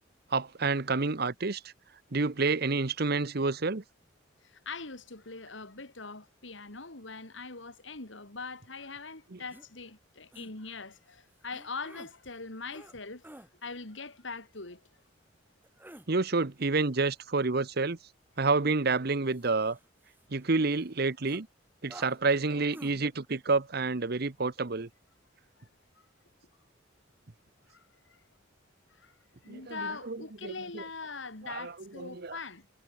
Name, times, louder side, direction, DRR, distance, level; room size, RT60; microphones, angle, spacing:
voice 1, 0.3-1.6 2.1-3.8 9.3-9.4 16.1-18.0 18.4-19.8 20.3-21.5 21.8-24.9 29.5-29.8 30.1-30.8 31.4-32.4, right 3 dB, 55° right, 1.0 m, -29 dB
voice 2, 4.4-14.8 25.6-25.7 27.7-28.2 28.9-29.1 29.4-32.7, left 4 dB, 75° left, 3.2 m, -42 dB
sound 1, 9.5-9.7 10.3-10.5 11.5-12.1 12.7-12.9 13.2-13.5 15.6-16.1 19.1-20.4 20.8-20.9 21.2-21.4 21.9-22.2 22.7-22.9, right 1 dB, 10° right, 2.8 m, -50 dB
head